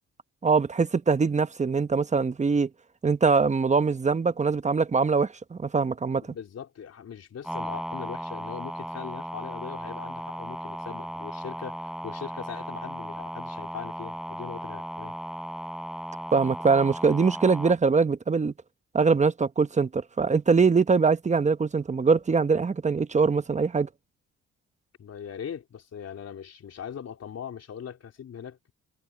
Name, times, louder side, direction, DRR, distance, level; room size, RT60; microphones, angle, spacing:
voice 1, 0.4-2.7 3.0-6.2 16.3-18.5 18.9-23.9, right 4 dB, 25° right, 1.0 m, -23 dB
voice 2, 6.2-15.1 25.0-28.7, left 8 dB, 55° left, 3.8 m, -40 dB
sound 1, 7.4-17.7, equal, ahead, 4.3 m, -36 dB
cardioid pair, 90°, 30 cm